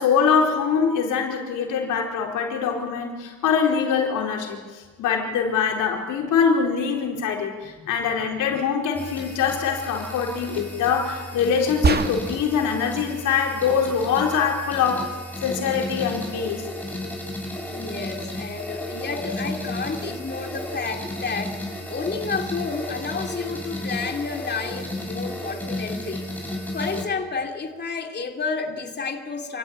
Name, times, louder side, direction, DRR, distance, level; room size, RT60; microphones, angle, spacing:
voice 1, 0.0-15.1 15.4-16.6, left 6 dB, 90° left, 1 dB, 4.3 m, -23 dB
sound 1, 8.9-27.1, left 1 dB, 5° left, 6.4 m, -33 dB
sound 2, 11.8-12.6, right 4 dB, 35° right, 1.7 m, -23 dB
voice 2, 17.7-29.6, left 4 dB, 35° left, 3 dB, 2.8 m, -31 dB
27.5 x 16.0 x 8.9 m, 1.4 s
cardioid pair, 90°, 30 cm